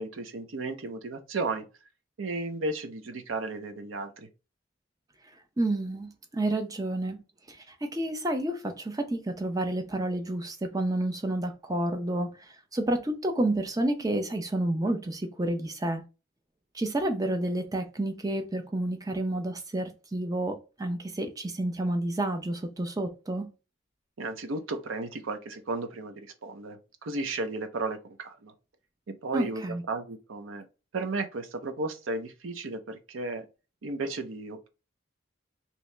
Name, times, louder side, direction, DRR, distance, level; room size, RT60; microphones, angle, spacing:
voice 1, 0.0-1.7 2.2-4.3 24.2-28.5 29.1-30.7 30.9-33.5 33.8-34.7, right 3 dB, 85° right, 0.6 m, -34 dB
voice 2, 5.6-7.2 7.5-16.0 16.7-23.5 29.3-29.8, right 1 dB, 20° right, 0.5 m, -30 dB
2.9 x 2.7 x 3.2 m
head